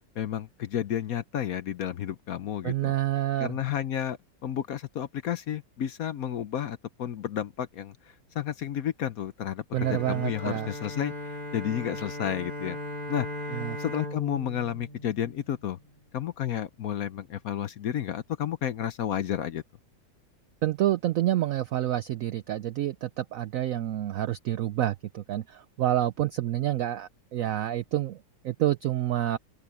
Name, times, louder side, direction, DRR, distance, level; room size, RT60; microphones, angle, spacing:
voice 1, 0.2-2.9 3.4-7.9 8.4-9.6 9.9-11.1 11.5-12.8 13.1-15.8 16.1-19.6, left 10 dB, 60° left, 1.0 m, -31 dB
voice 2, 2.6-3.6 9.7-10.7 13.5-13.8 20.6-29.4, right 13 dB, 85° right, 0.7 m, -28 dB
Bowed string instrument, 9.8-15.9, left 1 dB, 25° left, 3.4 m, -38 dB
open air
omnidirectional pair, 2.0 m